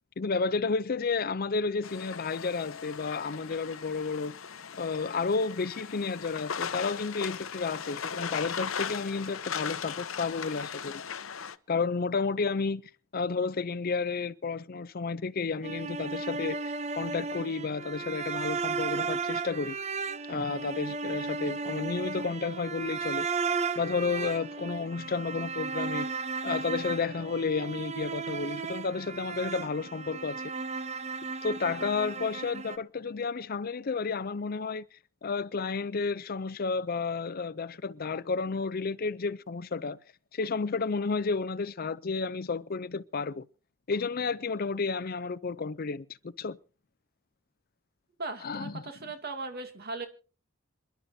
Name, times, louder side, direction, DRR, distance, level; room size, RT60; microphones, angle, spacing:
voice 1, 0.2-4.3 4.8-11.0 11.7-12.8 13.1-16.6 16.9-19.8 20.3-23.3 23.8-26.1 26.4-30.4 31.4-34.8 35.2-40.0 40.3-43.4 43.9-46.6 48.4-48.8, left 4 dB, 45° left, 0.6 m, -31 dB
sound 1, 1.8-11.6, left 7 dB, 85° left, 0.8 m, -38 dB
sound 2, 15.6-32.8, right 4 dB, 35° right, 0.7 m, -35 dB
voice 2, 48.2-50.1, right 3 dB, 50° right, 2.5 m, -38 dB
27.0 x 11.5 x 2.8 m
head